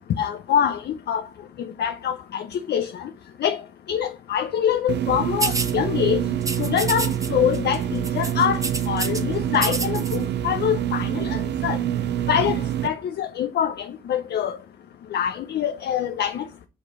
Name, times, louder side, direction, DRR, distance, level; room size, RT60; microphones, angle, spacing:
voice 1, 0.2-1.2 1.6-3.1 3.4-3.6 3.9-6.2 6.6-8.6 8.9-11.8 12.3-14.6 15.1-16.5, left 9 dB, 55° left, 0.6 m, -25 dB
sound 1, 4.9-12.9, right 10 dB, 60° right, 0.5 m, -26 dB
sound 2, 5.4-5.7 6.4-7.3 7.5-7.8 8.0-9.2 9.5-10.2, right 3 dB, 15° right, 0.8 m, -28 dB
6.3 x 3.2 x 4.9 m
cardioid pair, 90°, 20 cm